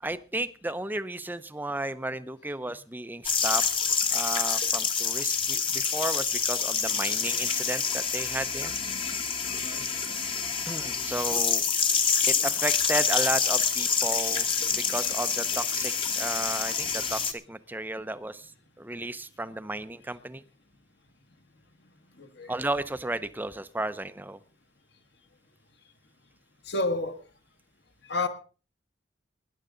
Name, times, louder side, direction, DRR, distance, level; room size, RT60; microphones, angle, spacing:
voice 1, 0.0-3.6 4.1-8.7 10.7-11.6 12.3-18.5 18.8-20.4 22.5-24.4, right 2 dB, 10° right, 0.6 m, -33 dB
sound 1, 3.2-17.3, left 6 dB, 25° left, 1.1 m, -27 dB
voice 2, 9.4-9.8 22.2-22.6 26.6-27.2 28.1-28.3, left 2 dB, 60° left, 1.6 m, -30 dB
20.0 x 10.5 x 3.8 m
head